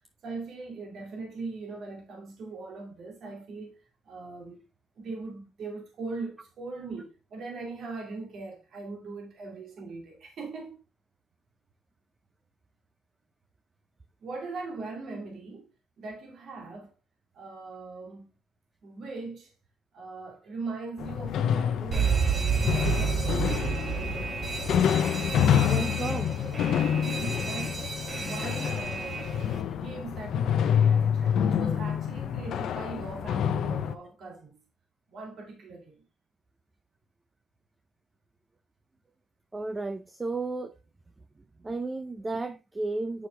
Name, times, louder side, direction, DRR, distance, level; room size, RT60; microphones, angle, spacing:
voice 1, 0.2-4.6 5.0-10.8 14.2-15.7 16.0-16.9 17.3-18.3 18.8-19.5 19.9-23.6 27.0-34.6 35.1-36.0, right 3 dB, 65° right, 2.6 m, -40 dB
sound 1, 21.0-33.9, left 8 dB, 75° left, 0.7 m, -27 dB
Alarm, 21.9-29.6, right 6 dB, 45° right, 1.8 m, -31 dB
voice 2, 25.6-26.3 39.5-40.7 41.6-43.3, right 3 dB, 25° right, 0.6 m, -33 dB
7.6 x 6.3 x 3.4 m
cardioid pair, 90°, 0 cm